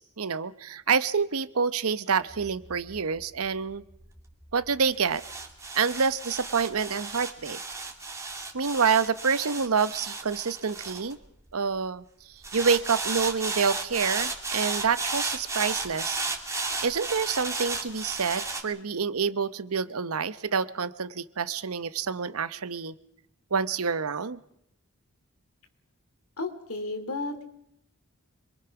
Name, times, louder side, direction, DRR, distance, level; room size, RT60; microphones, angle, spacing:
voice 1, 0.0-3.8 4.5-5.2 5.7-7.6 8.5-11.2 11.5-12.0 12.5-16.2 16.8-22.9 23.5-24.4, right 5 dB, 80° right, 14 dB, 0.9 m, -27 dB
sound 1, 2.3-11.7 12.4-18.6, right 3 dB, 15° right, 2.2 m, -34 dB
voice 2, 26.4-27.4, left 2 dB, 75° left, 7 dB, 2.8 m, -33 dB
26.5 x 22.0 x 5.9 m, 0.77 s
head